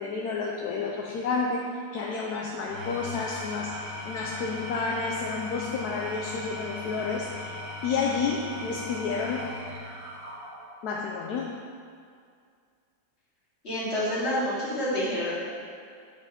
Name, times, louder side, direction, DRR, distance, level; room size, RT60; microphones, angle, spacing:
voice 1, 0.0-1.6 1.9-3.7 4.1-7.5 7.8-9.4 10.8-11.5, left 5 dB, 70° left, -1 dB, 1.0 m, -30 dB
Engine / Tools, 2.5-10.9, left 1 dB, 80° right, 2.7 m, -38 dB
voice 2, 13.6-15.4, equal, 35° left, -9 dB, 2.4 m, -28 dB
8.2 x 5.0 x 4.9 m, 2.2 s
omnidirectional pair, 2.0 m